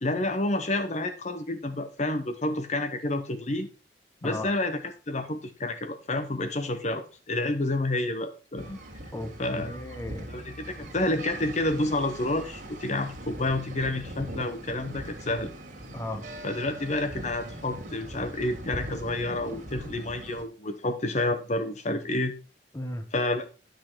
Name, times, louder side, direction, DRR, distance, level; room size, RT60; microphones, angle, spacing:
voice 1, 0.0-3.7 4.2-4.8 5.1-8.8 9.4-9.8 10.3-15.5 16.4-22.3 23.1-23.4, left 2 dB, 40° left, 9 dB, 0.8 m, -29 dB
sound 1, 8.6-20.4, right 1 dB, 45° right, 2.2 m, -41 dB
voice 2, 9.1-10.3 15.9-16.2 22.7-23.1, left 1 dB, 15° left, 9 dB, 1.0 m, -36 dB
10.5 x 6.4 x 4.5 m, 0.34 s
head